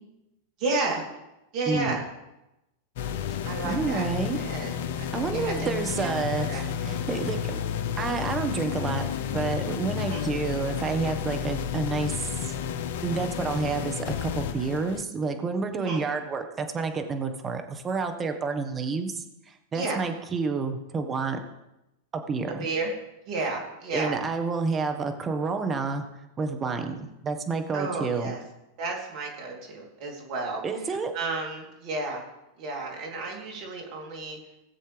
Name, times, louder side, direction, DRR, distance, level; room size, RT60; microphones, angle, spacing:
voice 1, 0.6-1.0 1.5-2.0 3.4-4.7 5.0-6.1 6.3-6.6 10.0-10.2 15.7-16.0 19.7-20.0 22.6-22.9 23.3-24.2 27.7-28.4 28.8-32.2 32.6-34.4, right 3 dB, 50° right, 0 dB, 3.4 m, -32 dB
voice 2, 1.7-2.0 3.6-4.5 5.1-7.6 8.0-12.2 12.5-12.6 13.0-21.4 22.1-22.7 23.9-26.0 26.4-28.3 30.6-31.1, right 4 dB, 25° right, 6 dB, 1.5 m, -29 dB
sound 1, 3.0-15.0, left 8 dB, 60° left, 0.7 m, -31 dB
18.5 x 7.6 x 3.5 m, 0.93 s
hypercardioid pair, 95°, 0 cm